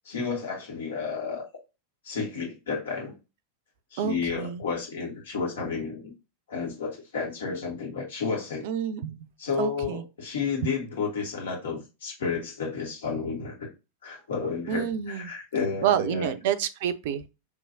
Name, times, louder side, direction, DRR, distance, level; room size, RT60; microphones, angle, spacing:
voice 1, 0.0-1.4 2.0-3.1 3.9-6.1 6.5-8.7 9.4-13.7 14.0-16.3, left 5 dB, 60° left, 1.6 m, -31 dB
voice 2, 4.0-4.6 8.6-9.3 9.6-10.0 10.6-10.7 14.7-15.3 15.8-17.2, right 9 dB, 50° right, 0.5 m, -28 dB
5.7 x 3.0 x 2.7 m
figure-of-eight pair, 90°, 0 cm